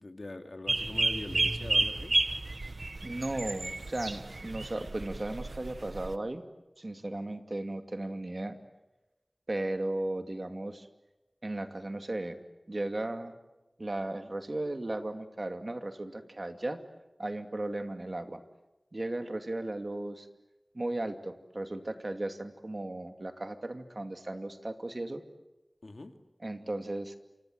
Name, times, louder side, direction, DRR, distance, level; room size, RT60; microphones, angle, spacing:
voice 1, 0.0-2.1 25.8-26.1, left 2 dB, 75° left, 6 dB, 2.4 m, -43 dB
sound 1, 0.7-6.2, right 2 dB, 80° right, 1.2 m, -31 dB
voice 2, 3.0-6.4 6.8-8.6 9.5-10.9 11.4-12.4 12.7-13.4 13.8-16.8 17.2-18.4 18.9-20.3 20.7-25.2 26.4-27.2, right 2 dB, 55° right, 7 dB, 2.5 m, -36 dB
28.5 x 25.5 x 7.9 m, 1.0 s
wide cardioid pair, 50°, 0 cm